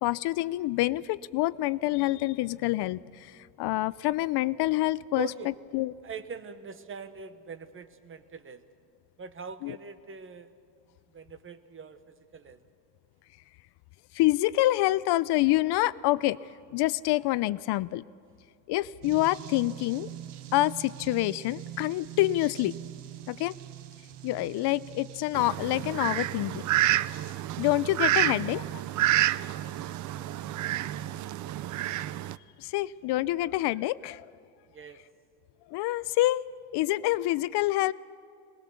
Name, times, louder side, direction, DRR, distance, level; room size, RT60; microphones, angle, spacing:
voice 1, 0.0-5.3 5.7-5.9 9.6-9.8 14.1-16.4 16.7-18.0 18.7-20.1 20.5-22.7 23.3-23.6 24.2-26.6 27.6-28.6 32.6-34.3 35.7-36.4 36.7-37.9, left 17 dB, 70° left, 18 dB, 0.5 m, -27 dB
voice 2, 5.1-5.5 6.0-8.6 9.2-10.5 11.1-12.6 28.2-28.5 34.7-35.0, right 5 dB, 30° right, 11 dB, 1.0 m, -42 dB
sound 1, 19.0-31.2, right 12 dB, 75° right, 1.1 m, -44 dB
Fowl, 25.3-32.3, right 14 dB, 45° right, 0.4 m, -29 dB
21.0 x 19.5 x 7.0 m, 2.4 s
cardioid pair, 140°, 42 cm